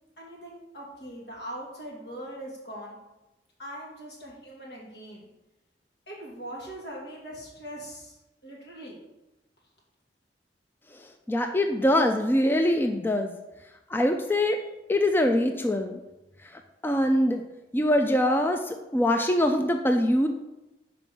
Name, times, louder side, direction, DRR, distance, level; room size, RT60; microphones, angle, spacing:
voice 1, 0.0-3.0 3.6-5.3 6.1-9.0, right 1 dB, 75° left, -4 dB, 2.5 m, -41 dB
voice 2, 11.3-13.3 13.9-14.6 14.9-16.0 16.8-17.4 17.7-20.3, left 1 dB, 10° left, 5 dB, 0.4 m, -23 dB
5.3 x 5.0 x 6.0 m, 1.0 s
head